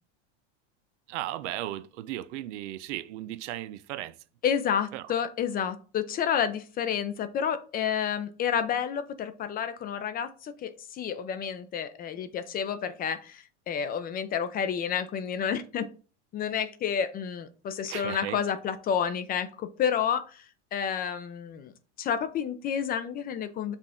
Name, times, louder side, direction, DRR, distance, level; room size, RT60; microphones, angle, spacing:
voice 1, 1.1-4.1 4.9-5.0 17.9-18.4, right 14 dB, 80° right, 0.5 m, -36 dB
voice 2, 4.4-15.9 16.3-20.5 20.7-21.7 22.0-23.7, left 8 dB, 25° left, 0.4 m, -30 dB
5.6 x 2.4 x 3.5 m
supercardioid pair, 120°, 35 cm